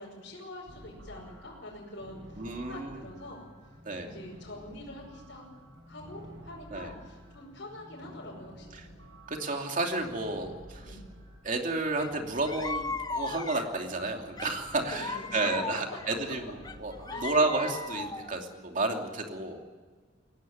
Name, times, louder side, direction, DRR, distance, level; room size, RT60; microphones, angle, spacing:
voice 1, 0.0-2.2 2.6-3.5 4.0-5.4 5.9-8.9 10.8-11.1 15.1-15.3 17.1-17.3, left 1 dB, 65° left, -4 dB, 5.6 m, -45 dB
sound 1, 0.7-18.2, equal, 85° right, 6.6 m, -51 dB
voice 2, 2.4-3.0 3.8-4.1 6.7-6.9 8.7-8.9 9.3-11.0 11.4-19.7, right 2 dB, 45° right, 3 dB, 2.8 m, -31 dB
sound 2, 12.0-12.1 12.4-13.8 14.4-16.1 16.6-18.4, left 4 dB, 20° left, 0.8 m, -37 dB
22.5 x 17.5 x 9.4 m, 1.5 s
head